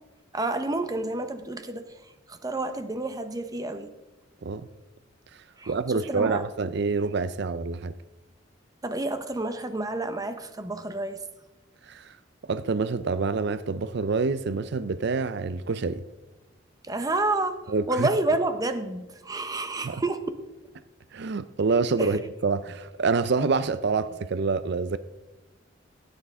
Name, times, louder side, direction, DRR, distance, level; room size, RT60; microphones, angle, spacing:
voice 1, 0.3-3.9 5.6-6.4 8.8-11.2 16.8-20.2 22.0-22.2, right 2 dB, 20° right, 0.9 m, -29 dB
voice 2, 5.7-7.9 11.9-12.1 12.5-16.0 17.7-18.1 19.8-20.0 21.1-25.0, right 4 dB, 65° right, 0.5 m, -27 dB
16.5 x 9.1 x 3.6 m
head